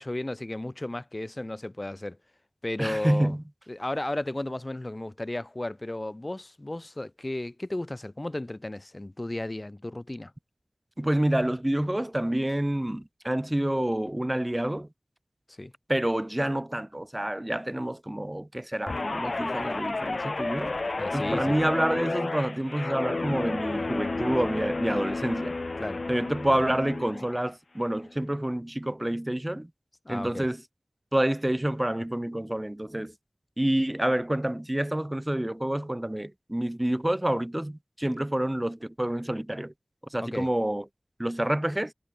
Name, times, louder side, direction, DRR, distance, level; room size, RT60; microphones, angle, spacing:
voice 1, 0.0-2.2 2.6-3.3 3.7-10.3 15.5-15.7 21.0-21.6 25.8-26.0 30.0-30.5 40.2-40.5, left 1 dB, 35° left, 1.4 m, -34 dB
voice 2, 2.8-3.4 11.0-14.9 15.9-20.7 21.1-25.6 26.1-29.7 30.1-30.6 31.1-33.1 33.6-39.7 40.1-40.8 41.2-41.9, right 1 dB, 20° right, 2.3 m, -28 dB
Guitar, 18.9-27.5 27.8-28.2, left 3 dB, 70° left, 1.8 m, -32 dB
wide cardioid pair, 60°, 0 cm